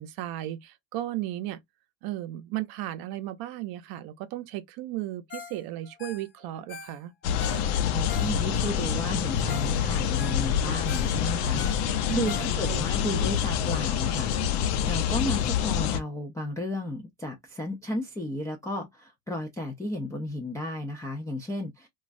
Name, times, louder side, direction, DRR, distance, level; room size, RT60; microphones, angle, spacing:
voice 1, 0.0-1.6 2.0-7.1 12.1-12.9, right 14 dB, 55° right, 0.6 m, -35 dB
Ringtone, 5.3-5.6 5.8-8.7 9.2-9.3 9.5-9.8 10.0-12.9 13.3-13.4, left 4 dB, 25° left, 0.8 m, -43 dB
sound 1, 7.2-16.0, left 8 dB, 85° left, 0.7 m, -26 dB
voice 2, 7.9-21.9, left 1 dB, 10° left, 0.3 m, -34 dB
3.0 x 2.3 x 2.4 m
cardioid pair, 135°, 43 cm